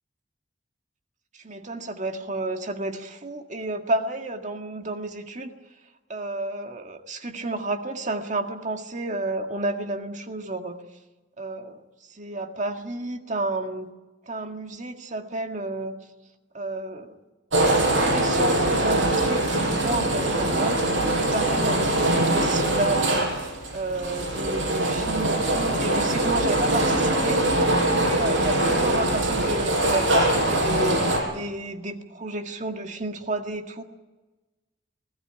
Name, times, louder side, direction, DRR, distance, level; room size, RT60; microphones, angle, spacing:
voice 1, 1.3-5.5 6.1-10.8 11.4-11.8 12.1-13.9 14.3-15.9 16.5-17.2 17.6-20.8 21.1-27.4 27.9-33.8, right 2 dB, 40° right, 5 dB, 1.9 m, -31 dB
sound 1, 17.5-31.2, right 1 dB, 90° right, 7.6 m, -23 dB
20.5 x 17.0 x 10.0 m, 1.2 s
head